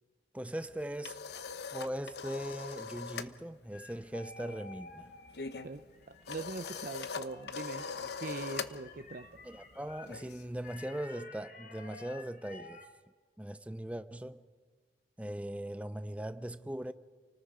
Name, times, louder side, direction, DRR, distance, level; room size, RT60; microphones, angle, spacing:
voice 1, 0.3-1.2 1.7-5.1 9.4-12.8 13.4-14.4 15.2-16.9, right 1 dB, 5° right, 0.6 m, -40 dB
sound 1, 0.7-3.4 3.6-10.9, left 5 dB, 65° left, 0.9 m, -42 dB
sound 2, 3.7-10.1 10.6-12.9, left 3 dB, 50° left, 2.0 m, -52 dB
voice 2, 6.3-9.4, right 3 dB, 50° right, 0.6 m, -42 dB
30.0 x 19.0 x 5.0 m
head